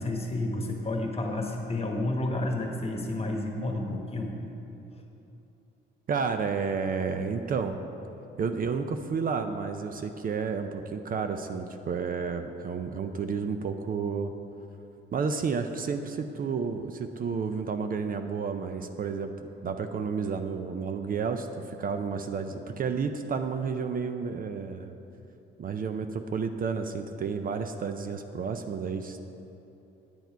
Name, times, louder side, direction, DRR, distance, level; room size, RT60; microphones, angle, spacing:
voice 1, 0.0-4.3, left 2 dB, 30° left, 2 dB, 1.3 m, -30 dB
voice 2, 6.1-7.8 8.4-14.3 15.1-19.3 19.6-25.0 25.6-29.2, right 5 dB, 45° right, 7 dB, 0.5 m, -31 dB
9.4 x 7.1 x 4.5 m, 2.9 s
cardioid pair, 90°, 20 cm